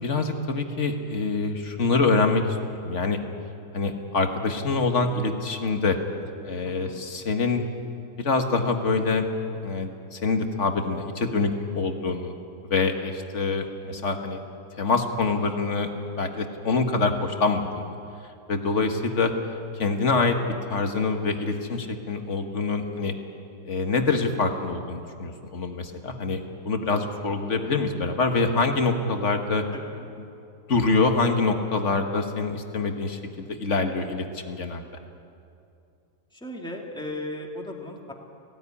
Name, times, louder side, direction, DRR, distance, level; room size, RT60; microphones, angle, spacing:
voice 1, 0.0-2.4 2.8-3.2 3.7-6.0 6.4-7.6 8.2-9.2 9.6-12.3 12.7-14.4 14.8-15.9 16.2-17.8 18.5-19.3 19.7-23.1 23.6-26.4 26.6-29.6 30.7-34.9, left 3 dB, 45° left, 5 dB, 1.6 m, -25 dB
voice 2, 6.6-7.0 29.7-30.1 36.3-38.1, left 1 dB, 5° left, 0 dB, 2.0 m, -36 dB
18.0 x 16.5 x 9.7 m, 2.6 s
omnidirectional pair, 1.8 m